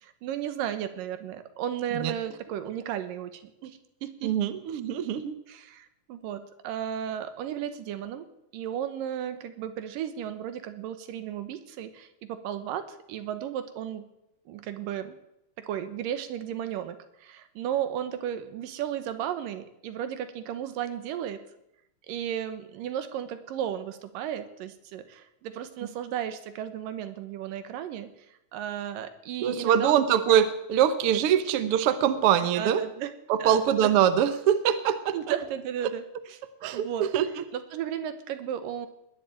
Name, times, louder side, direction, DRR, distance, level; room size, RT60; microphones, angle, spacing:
voice 1, 0.0-4.3 5.5-8.3 8.5-14.1 14.5-15.2 15.6-21.4 22.1-28.1 28.5-30.0 32.6-33.1 33.4-33.9 35.1-36.0 36.7-37.1 37.5-38.9, right 10 dB, 80° right, 10 dB, 2.8 m, -34 dB
voice 2, 4.2-5.3 29.4-32.8 33.3-35.3 36.6-36.9 37.1-37.4, right 9 dB, 65° right, 11 dB, 1.5 m, -23 dB
20.0 x 7.4 x 8.9 m, 0.85 s
omnidirectional pair, 3.8 m